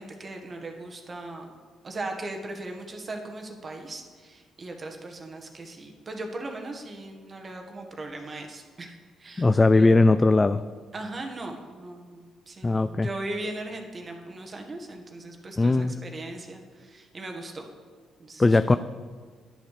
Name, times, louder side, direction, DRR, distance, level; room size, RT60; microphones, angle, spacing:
voice 1, 0.0-1.5 1.8-10.3 10.9-17.7 18.2-18.6, right 2 dB, 35° right, 3 dB, 1.6 m, -38 dB
voice 2, 9.4-10.6 12.6-13.1 15.6-15.9 18.4-18.8, left 2 dB, 20° left, 12 dB, 0.4 m, -19 dB
10.0 x 8.9 x 6.6 m, 1.5 s
cardioid pair, 90°, 0 cm